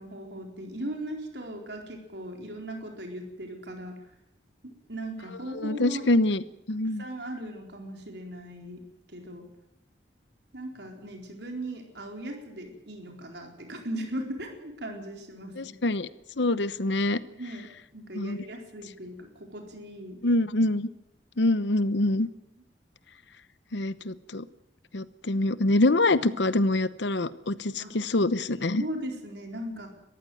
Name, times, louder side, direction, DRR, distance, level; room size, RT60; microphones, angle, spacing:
voice 1, 0.0-3.9 4.6-6.1 7.0-8.8 9.1-9.5 10.5-15.8 17.4-17.7 17.9-20.2 27.8-27.9 28.7-29.9, right 1 dB, 65° right, 3 dB, 4.3 m, -38 dB
voice 2, 5.5-6.4 6.7-7.0 15.6-16.1 16.4-17.2 18.1-18.4 20.2-20.9 21.4-22.3 23.7-24.4 24.9-28.8, left 2 dB, 75° left, 15 dB, 0.9 m, -25 dB
22.0 x 15.0 x 9.3 m, 0.86 s
head